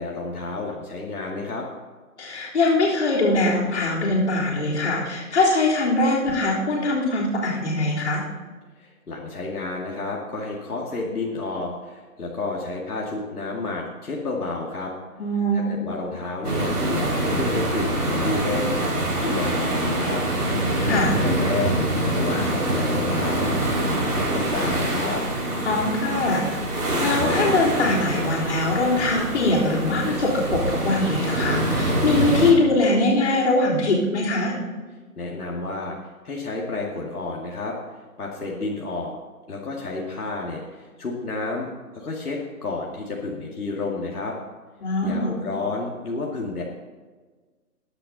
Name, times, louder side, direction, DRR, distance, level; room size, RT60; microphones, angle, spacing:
voice 1, 0.0-1.7 8.8-14.9 15.5-18.8 19.2-20.2 20.8-21.8 22.1-25.2 35.2-36.0 36.2-39.1 39.5-44.4 45.0-46.6, left 3 dB, 75° left, -2 dB, 2.3 m, -31 dB
voice 2, 2.2-8.2 15.2-15.8 20.9-21.2 25.6-34.5 44.8-45.3, left 2 dB, 50° left, -7 dB, 3.8 m, -22 dB
sound 1, 16.4-32.5, right 1 dB, 90° right, 4.4 m, -24 dB
13.5 x 9.9 x 4.0 m, 1.4 s
hypercardioid pair, 165°, 45 cm